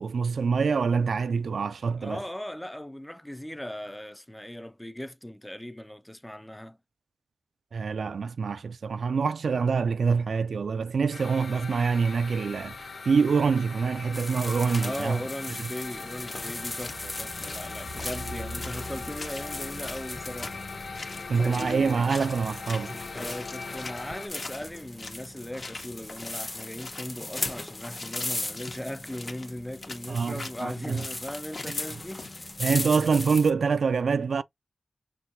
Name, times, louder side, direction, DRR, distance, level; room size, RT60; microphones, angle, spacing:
voice 1, 0.0-2.2 7.7-12.8 13.1-15.2 21.3-22.9 30.1-31.0 32.6-34.4, right 5 dB, 80° right, 0.3 m, -25 dB
voice 2, 2.0-6.8 14.8-20.7 23.1-32.6, left 1 dB, 10° left, 0.4 m, -38 dB
sound 1, 11.1-24.3, left 4 dB, 70° left, 0.7 m, -41 dB
sound 2, 14.1-33.5, left 2 dB, 30° left, 0.8 m, -38 dB
sound 3, 16.3-16.4 16.8-17.6 18.0-18.2 18.6-19.5 19.8-20.6 20.9-21.8 22.1-22.4 22.7-22.9 23.2-25.2 25.5-32.7, left 3 dB, 55° left, 1.0 m, -42 dB
5.9 x 2.3 x 2.6 m
wide cardioid pair, 75°, 0 cm